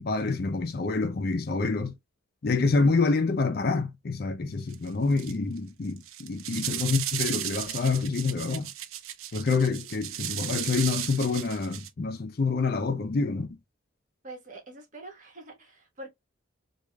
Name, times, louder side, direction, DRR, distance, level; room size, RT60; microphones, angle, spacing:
voice 1, 0.0-1.9 2.4-8.7 9.3-13.6, left 4 dB, 50° left, 0.5 m, -27 dB
sound 1, 4.7-4.9 5.2-5.6 6.0-11.9, right 12 dB, 85° right, 0.5 m, -35 dB
voice 2, 14.2-16.1, right 2 dB, 40° right, 1.2 m, -45 dB
4.8 x 2.3 x 2.2 m
head